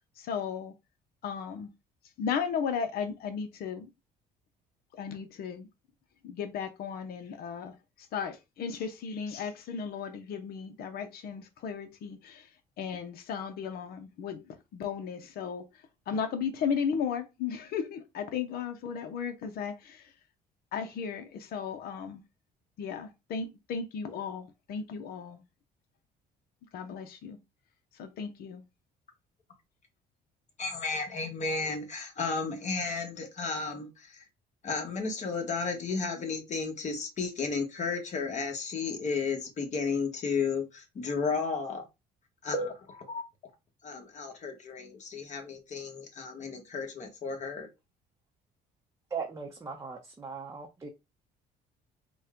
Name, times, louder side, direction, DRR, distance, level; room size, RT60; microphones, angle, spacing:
voice 1, 0.2-0.7 1.2-1.7 2.2-3.9 5.0-5.7 6.2-12.5 12.8-15.7 16.1-20.1 20.7-22.2 22.8-25.4 26.7-27.4 27.9-28.6, left 6 dB, 65° left, 0.7 m, -35 dB
voice 2, 30.6-34.2 34.6-41.8 42.4-43.2 43.8-47.7, left 4 dB, 45° left, 1.3 m, -33 dB
voice 3, 49.1-50.9, right 5 dB, 20° right, 0.7 m, -38 dB
4.1 x 2.2 x 3.6 m
cardioid pair, 110°, 17 cm